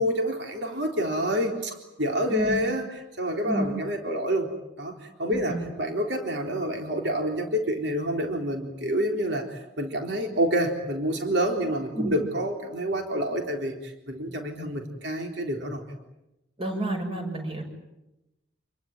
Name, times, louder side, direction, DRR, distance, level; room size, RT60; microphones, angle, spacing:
voice 1, 0.0-2.9 3.2-4.5 4.8-16.0, equal, 65° right, 3 dB, 3.9 m, -28 dB
voice 2, 5.3-5.6 12.0-12.1 16.6-17.6, right 1 dB, 30° right, 4 dB, 6.5 m, -30 dB
28.0 x 22.0 x 9.2 m, 0.93 s
head